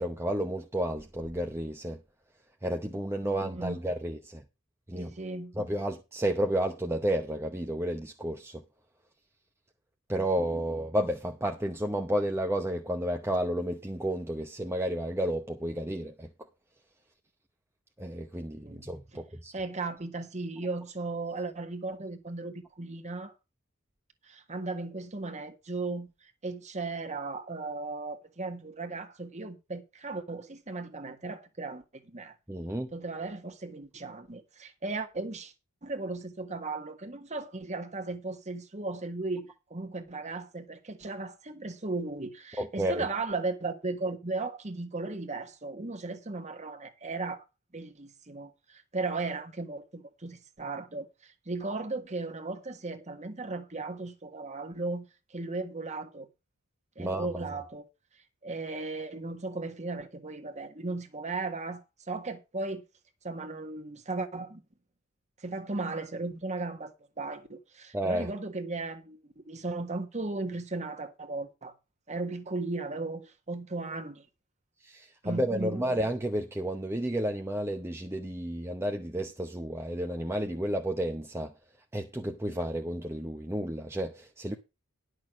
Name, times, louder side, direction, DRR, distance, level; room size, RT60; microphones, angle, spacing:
voice 1, 0.0-2.0 2.6-4.4 4.9-5.1 5.6-8.6 10.1-16.3 18.0-19.5 32.5-32.9 42.6-43.1 57.0-57.4 67.9-68.3 74.8-81.5 81.9-84.5, right 1 dB, 10° right, 0.8 m, -31 dB
voice 2, 3.2-3.8 4.9-5.5 18.6-19.2 19.5-23.3 24.2-26.1 26.4-32.3 32.9-35.5 35.8-47.4 47.7-56.3 57.0-57.8 58.4-62.8 63.2-64.6 65.4-71.7 72.1-74.2 75.2-75.8, right 3 dB, 30° right, 1.4 m, -36 dB
10.5 x 6.3 x 6.1 m
head